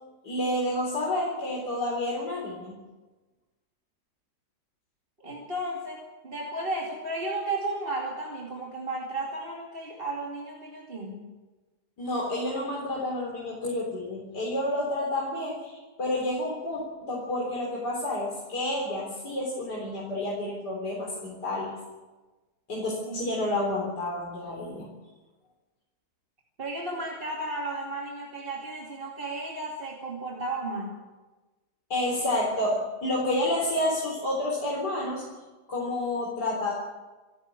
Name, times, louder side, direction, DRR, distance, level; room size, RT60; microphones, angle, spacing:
voice 1, 0.2-2.8 12.0-21.7 22.7-24.9 31.9-35.2 35.7-36.7, left 1 dB, 80° left, -3 dB, 4.5 m, -29 dB
voice 2, 5.2-11.3 23.1-23.3 26.6-31.0, right 2 dB, 35° right, -2 dB, 2.7 m, -34 dB
27.5 x 12.0 x 8.6 m, 1.2 s
omnidirectional pair, 1.8 m